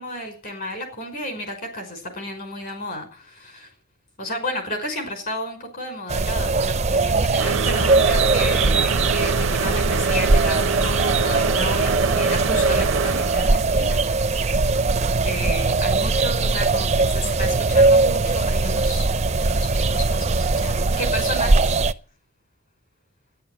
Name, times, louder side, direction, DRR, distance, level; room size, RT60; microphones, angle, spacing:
voice 1, 0.0-3.7 4.2-14.8 15.2-19.1 19.4-21.8, left 1 dB, 45° left, 6 dB, 5.6 m, -32 dB
sound 1, 6.1-21.9, right 3 dB, 30° right, 0.6 m, -20 dB
sound 2, 7.4-14.0, right 5 dB, 75° right, 0.7 m, -26 dB
13.0 x 11.0 x 8.2 m, 0.41 s
head